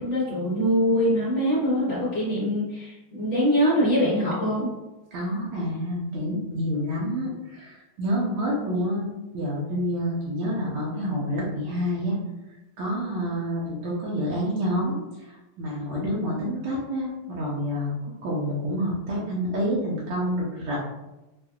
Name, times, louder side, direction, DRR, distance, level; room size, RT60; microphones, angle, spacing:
voice 1, 0.0-4.7, equal, 45° left, -8 dB, 0.8 m, -23 dB
voice 2, 5.1-9.1 9.3-12.1 12.8-20.8, equal, 85° right, -5 dB, 1.7 m, -28 dB
4.4 x 2.5 x 2.3 m, 1.0 s
omnidirectional pair, 2.3 m